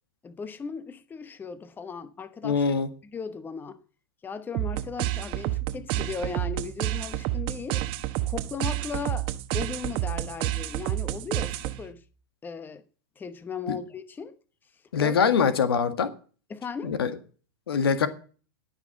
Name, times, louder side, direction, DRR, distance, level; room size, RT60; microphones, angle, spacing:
voice 1, 0.2-3.8 4.2-7.8 8.2-9.3 9.5-12.0 12.4-12.8 13.2-14.3 15.0-15.1 16.5-17.0, left 5 dB, 15° left, 0.9 m, -37 dB
voice 2, 2.4-2.9 13.7-13.8 14.9-16.1 16.8-17.1 17.7-18.1, left 6 dB, 85° left, 1.8 m, -23 dB
sound 1, 4.5-12.0, right 15 dB, 45° right, 1.1 m, -30 dB
17.5 x 6.2 x 7.3 m
hypercardioid pair, 120°, 12 cm